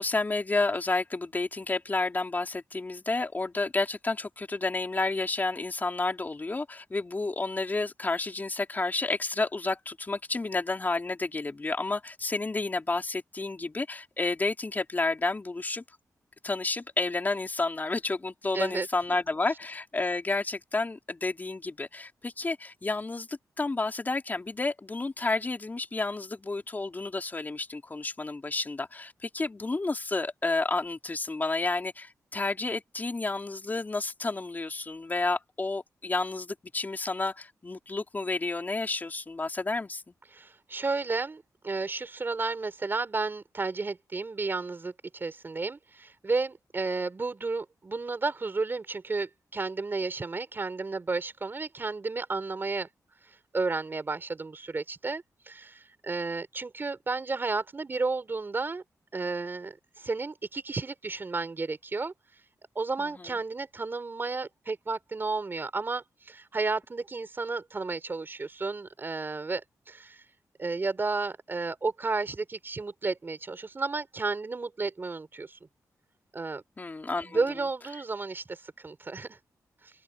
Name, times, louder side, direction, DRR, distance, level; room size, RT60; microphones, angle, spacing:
voice 1, 0.0-15.8 16.4-40.1 63.0-63.3 76.8-77.4, left 3 dB, 30° left, 4.2 m, -31 dB
voice 2, 18.5-18.9 40.3-52.9 53.5-58.8 59.1-62.1 62.7-70.2 70.6-75.6 76.3-76.6 77.2-79.4, right 3 dB, 35° right, 4.4 m, -32 dB
open air
wide cardioid pair, 105°, 6 cm